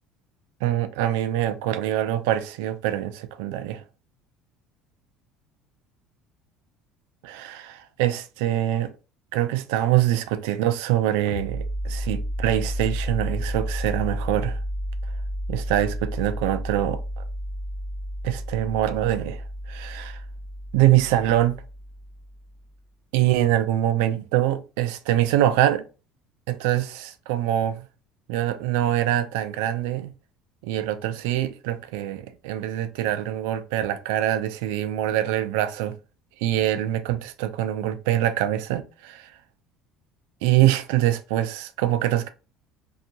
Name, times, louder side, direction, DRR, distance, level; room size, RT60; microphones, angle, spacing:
voice 1, 0.6-3.8 7.2-8.9 9.3-14.6 15.5-17.2 18.2-20.2 20.7-21.6 23.1-25.8 26.5-27.9 28.3-30.1 30.6-36.0 36.4-39.3 40.4-42.3, right 13 dB, 90° right, 0.3 m, -24 dB
sound 1, 11.3-22.6, equal, 50° left, 1.4 m, -32 dB
2.6 x 2.3 x 2.7 m
cardioid pair, 120°, 0 cm